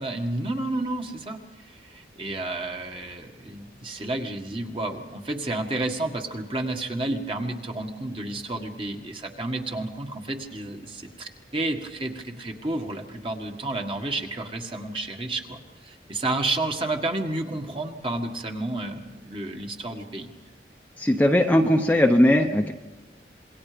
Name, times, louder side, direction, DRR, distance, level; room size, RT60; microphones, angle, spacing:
voice 1, 0.0-20.3, right 2 dB, 30° right, 3 dB, 1.8 m, -31 dB
voice 2, 21.0-22.7, left 1 dB, 10° left, 2 dB, 0.9 m, -19 dB
27.0 x 22.0 x 5.2 m, 1.2 s
head